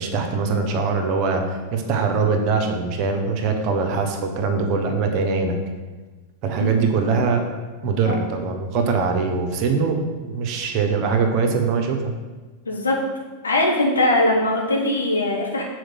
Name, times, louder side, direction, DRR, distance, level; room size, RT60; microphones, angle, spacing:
voice 1, 0.0-5.6 6.4-7.4 7.8-12.1, right 4 dB, 40° right, 4 dB, 1.1 m, -22 dB
voice 2, 12.6-13.0 13.4-15.6, left 1 dB, 75° left, -1 dB, 1.5 m, -20 dB
6.4 x 4.4 x 6.4 m, 1.3 s
figure-of-eight pair, 90°, 0 cm